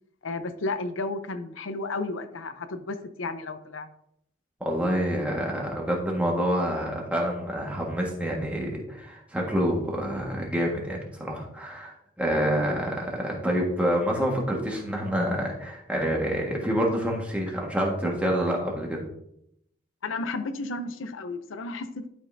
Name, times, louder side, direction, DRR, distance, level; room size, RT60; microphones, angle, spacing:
voice 1, 0.2-3.9 20.0-22.1, left 3 dB, 85° left, 9 dB, 0.6 m, -33 dB
voice 2, 4.6-19.0, equal, 5° right, -2 dB, 1.5 m, -27 dB
12.0 x 5.3 x 2.6 m, 0.75 s
head